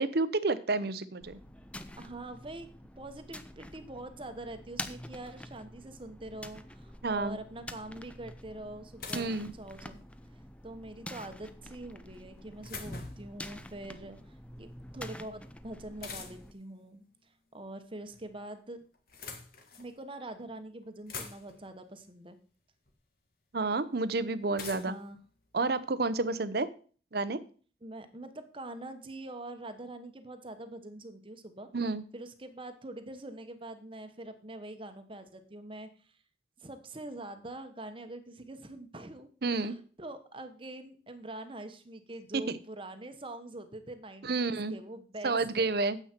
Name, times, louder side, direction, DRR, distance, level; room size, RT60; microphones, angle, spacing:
voice 1, 0.0-1.4 7.0-7.4 9.1-9.5 23.5-24.9 25.5-26.7 27.1-27.4 31.7-32.0 39.4-39.8 42.3-42.6 44.2-44.7 45.2-46.0, right 3 dB, 60° right, 14 dB, 0.7 m, -30 dB
sound 1, 1.2-16.5, left 1 dB, 5° left, 0.6 m, -46 dB
voice 2, 2.0-2.7 3.0-10.0 10.6-14.7 14.9-18.8 19.8-22.4 24.7-25.2 26.3-26.4 27.8-31.7 32.1-36.1 36.6-45.7, right 1 dB, 30° right, 8 dB, 1.1 m, -44 dB
sound 2, 9.0-10.1 12.1-13.4 16.0-16.6 17.8-18.4 18.9-19.9 20.6-20.7 20.8-21.7 22.9-23.0 24.6-26.1, left 5 dB, 55° left, 1.7 m, -45 dB
9.6 x 8.0 x 4.5 m, 0.41 s
head